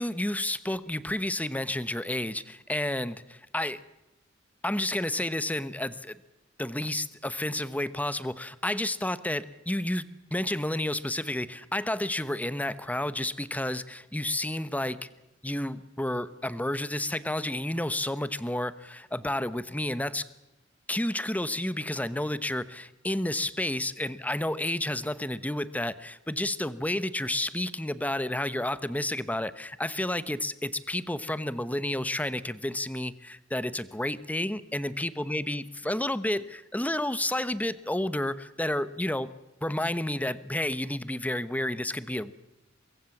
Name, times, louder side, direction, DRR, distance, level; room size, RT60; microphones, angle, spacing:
voice 1, 0.0-3.8 4.6-6.2 6.6-15.1 15.4-20.3 20.9-39.3 39.6-42.3, left 1 dB, 10° left, 15 dB, 1.0 m, -31 dB
24.0 x 23.0 x 7.3 m, 0.95 s
head